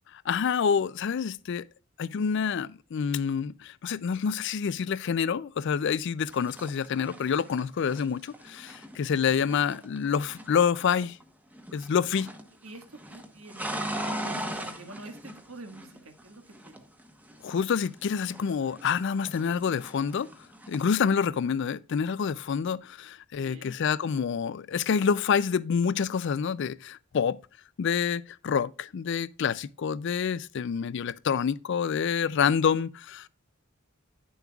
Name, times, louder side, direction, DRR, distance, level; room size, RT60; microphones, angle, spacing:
voice 1, 0.1-1.6 2.0-11.2 11.7-12.3 17.4-20.3 20.7-27.4 27.8-33.3, left 6 dB, 60° left, 0.4 m, -27 dB
sound 1, 6.3-11.2 11.5-12.5 12.8-16.2 16.5-19.0 19.2-20.9, right 1 dB, 10° right, 0.9 m, -39 dB
voice 2, 12.0-12.3 12.6-16.8 23.3-23.8, right 2 dB, 85° right, 1.6 m, -47 dB
9.9 x 7.0 x 2.3 m
head